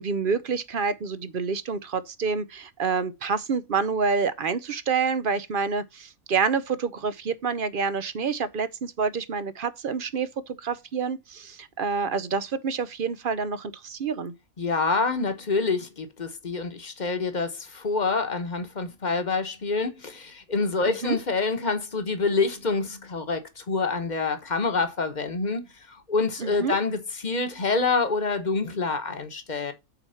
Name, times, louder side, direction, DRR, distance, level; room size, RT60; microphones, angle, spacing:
voice 1, 0.0-14.3 20.9-21.2 26.4-26.7, right 5 dB, 50° right, 0.6 m, -28 dB
voice 2, 14.6-29.7, left 4 dB, 35° left, 1.2 m, -27 dB
7.8 x 4.5 x 5.6 m
omnidirectional pair, 1.5 m